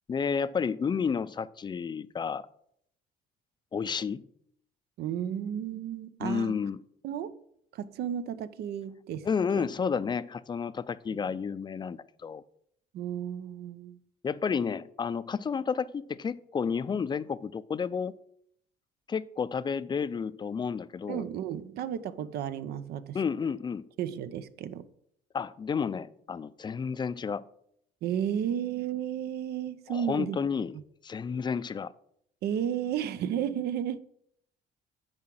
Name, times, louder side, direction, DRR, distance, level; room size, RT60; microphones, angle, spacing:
voice 1, 0.1-2.5 3.7-4.3 6.2-6.8 9.2-12.4 14.2-18.1 19.1-21.3 23.1-23.9 25.3-27.4 29.9-30.8 31.0-31.9, left 6 dB, 25° left, 0.5 m, -31 dB
voice 2, 5.0-6.6 7.0-7.4 7.7-9.7 12.9-14.0 21.1-23.2 24.0-24.9 28.0-30.4 30.7-30.8 32.4-34.0, right 9 dB, 70° right, 0.7 m, -33 dB
9.6 x 4.8 x 7.7 m
cardioid pair, 110°, 17 cm